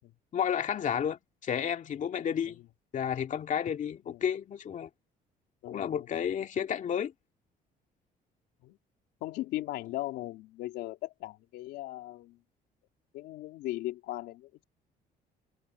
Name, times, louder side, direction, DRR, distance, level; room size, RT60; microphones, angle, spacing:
voice 1, 0.3-2.6 2.9-4.9 5.7-7.1, left 8 dB, 45° left, 2.3 m, -31 dB
voice 2, 5.6-6.1 8.6-8.8 9.2-12.4 13.1-14.6, left 16 dB, 90° left, 3.7 m, -38 dB
cardioid pair, 110°, 17 cm